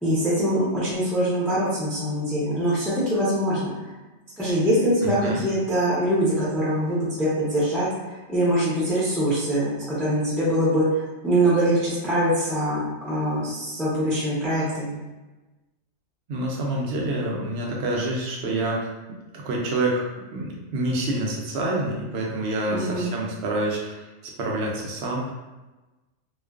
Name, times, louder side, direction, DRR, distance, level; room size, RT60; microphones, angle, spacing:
voice 1, 0.0-3.6 4.4-7.9 8.3-9.7 10.0-15.0 22.7-23.1, right 1 dB, ahead, -9 dB, 0.5 m, -23 dB
voice 2, 5.0-5.4 16.3-18.9 19.3-24.1 24.4-25.3, right 1 dB, 65° right, -2 dB, 0.7 m, -27 dB
2.4 x 2.2 x 2.3 m, 1.1 s
omnidirectional pair, 1.4 m